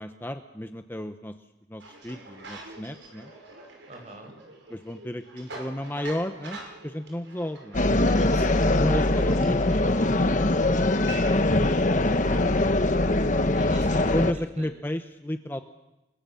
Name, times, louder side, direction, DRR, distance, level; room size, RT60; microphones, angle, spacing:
voice 1, 0.0-1.3 1.7-3.3 4.7-7.8 8.8-12.0 14.1-15.6, left 1 dB, 10° left, 7 dB, 0.9 m, -33 dB
sound 1, 1.8-12.6, right 2 dB, 85° right, 5.5 m, -45 dB
voice 2, 3.9-4.3 8.2-9.2 13.5-14.7, right 1 dB, 40° right, 4 dB, 5.8 m, -43 dB
sound 2, 7.7-14.3, left 2 dB, 40° left, 1.1 m, -22 dB
29.5 x 21.5 x 7.1 m, 0.97 s
head